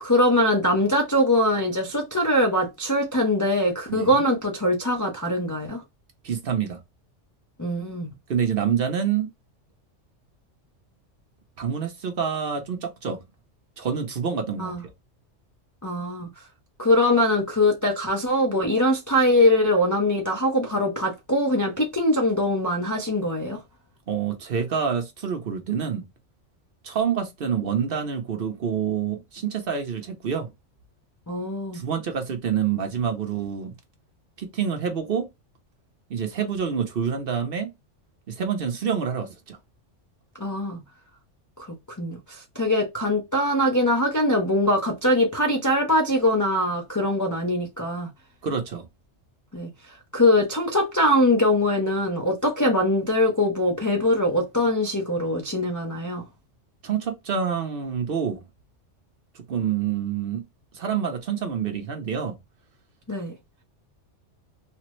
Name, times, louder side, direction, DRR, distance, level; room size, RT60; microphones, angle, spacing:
voice 1, 0.0-5.8 7.6-8.1 14.6-14.8 15.8-16.3 16.8-23.6 31.3-31.8 40.4-40.8 42.0-48.1 49.5-49.7 50.1-56.2 63.1-63.3, left 1 dB, 30° left, 0.3 m, -22 dB
voice 2, 3.9-4.2 6.2-6.8 8.3-9.3 11.6-13.2 13.8-14.7 24.1-26.0 26.8-30.5 31.7-33.8 34.4-35.3 36.1-37.7 38.3-39.6 48.4-48.9 56.8-58.4 59.3-60.4 60.7-62.4, right 7 dB, 55° right, 0.9 m, -27 dB
3.3 x 2.0 x 3.0 m
omnidirectional pair, 1.2 m